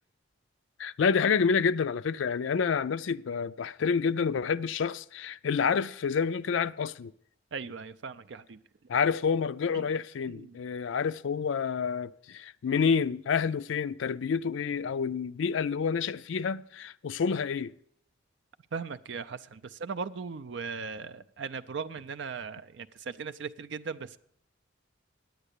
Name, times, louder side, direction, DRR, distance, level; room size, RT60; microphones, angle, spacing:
voice 1, 0.8-7.1 8.9-17.7, left 6 dB, 70° left, 0.4 m, -28 dB
voice 2, 7.5-8.6 9.7-9.9 10.3-10.6 18.7-24.2, right 5 dB, 60° right, 0.4 m, -38 dB
9.2 x 8.8 x 8.2 m
head